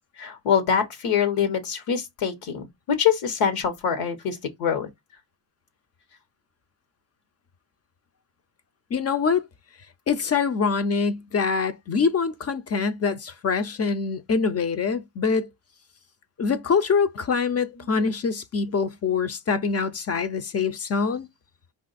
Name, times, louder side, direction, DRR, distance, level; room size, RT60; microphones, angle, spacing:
voice 1, 0.2-4.9 17.8-18.0, left 7 dB, 85° left, 1.2 m, -24 dB
voice 2, 8.9-9.5 10.1-15.5 16.4-21.3, left 5 dB, 30° left, 0.4 m, -24 dB
4.8 x 2.5 x 4.0 m
cardioid pair, 105°, 50 cm